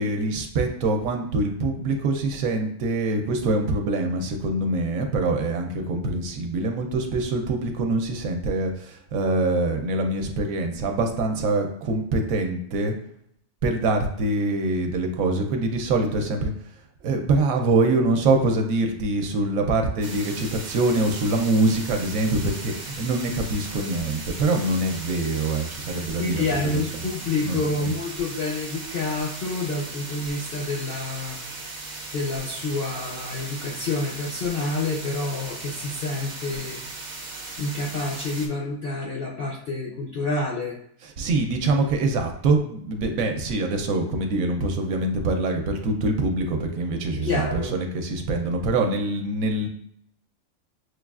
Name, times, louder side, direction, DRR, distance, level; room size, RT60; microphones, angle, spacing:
voice 1, 0.0-12.9 13.6-16.5 17.0-26.4 26.7-27.1 27.4-27.9 41.0-49.7, right 2 dB, 70° right, 4 dB, 0.9 m, -24 dB
sound 1, 20.0-38.5, right 3 dB, 45° right, 0.7 m, -37 dB
voice 2, 26.2-31.4 32.1-36.8 37.6-40.8 47.1-47.7, left 3 dB, 65° left, -2 dB, 0.5 m, -28 dB
6.4 x 2.3 x 2.3 m, 0.69 s
omnidirectional pair, 1.6 m